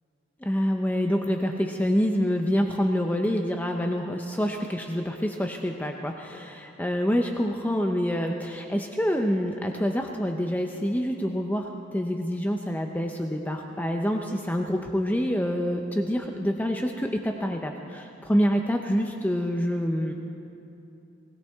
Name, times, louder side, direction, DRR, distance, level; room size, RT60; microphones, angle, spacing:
voice 1, 0.4-20.1, equal, 10° left, 3 dB, 0.6 m, -27 dB
21.0 x 16.5 x 3.5 m, 2.8 s
head